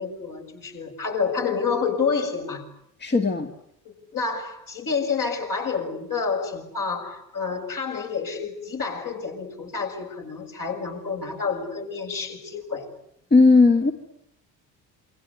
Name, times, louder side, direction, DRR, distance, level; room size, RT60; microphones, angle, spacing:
voice 1, 0.0-2.6 3.8-12.9, left 5 dB, 45° left, 2 dB, 7.6 m, -29 dB
voice 2, 3.0-3.5 13.3-13.9, left 3 dB, 20° left, 4 dB, 2.5 m, -16 dB
28.0 x 25.0 x 8.3 m, 0.73 s
hypercardioid pair, 60°, 46 cm